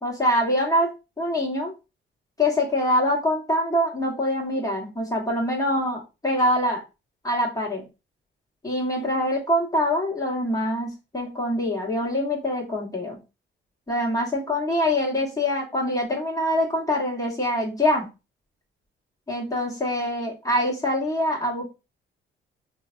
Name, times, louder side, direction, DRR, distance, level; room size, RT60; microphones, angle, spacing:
voice 1, 0.0-1.7 2.4-6.8 7.2-7.9 8.6-13.2 13.9-18.1 19.3-21.6, left 1 dB, 15° left, -2 dB, 1.2 m, -24 dB
3.1 x 2.2 x 2.5 m, 0.27 s
cardioid pair, 90°, 20 cm